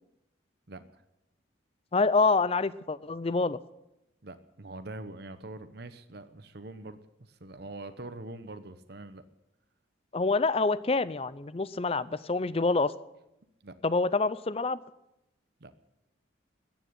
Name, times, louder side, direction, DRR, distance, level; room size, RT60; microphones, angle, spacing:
voice 1, 0.7-1.0 4.2-9.3 13.6-13.7 15.6-15.7, right 2 dB, 55° right, 11 dB, 1.0 m, -44 dB
voice 2, 1.9-3.6 10.1-12.9 13.8-14.8, left 3 dB, 30° left, 17 dB, 0.5 m, -26 dB
14.0 x 9.2 x 9.6 m, 0.89 s
head